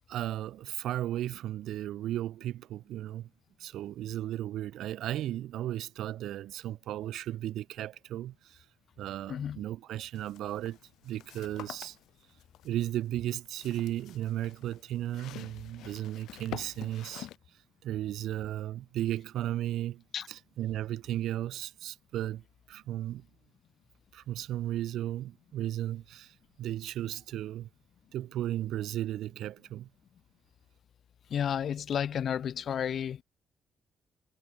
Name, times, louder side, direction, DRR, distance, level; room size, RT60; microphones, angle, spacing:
voice 1, 0.1-3.3 3.6-8.6 9.0-10.8 11.0-12.0 12.6-17.3 17.8-20.0 20.3-22.4 22.7-23.3 24.1-27.7 28.1-29.9, right 13 dB, 80° right, 0.9 m, -35 dB
voice 2, 9.3-9.6 20.1-20.3 31.3-33.2, left 8 dB, 60° left, 0.5 m, -32 dB
sound 1, 10.1-17.4, left 13 dB, 85° left, 1.5 m, -48 dB
cardioid pair, 90°, 0 cm